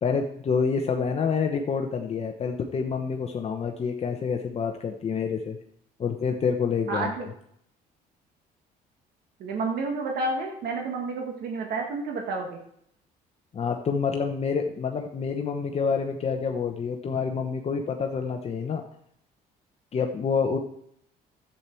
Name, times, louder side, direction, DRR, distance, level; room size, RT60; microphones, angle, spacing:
voice 1, 0.0-5.6 6.0-7.3 13.5-18.8 19.9-20.6, left 5 dB, 35° left, 4 dB, 0.9 m, -27 dB
voice 2, 6.9-7.3 9.4-12.6, right 3 dB, 70° right, 1 dB, 1.5 m, -30 dB
10.5 x 8.5 x 4.5 m, 0.70 s
cardioid pair, 110°, 17 cm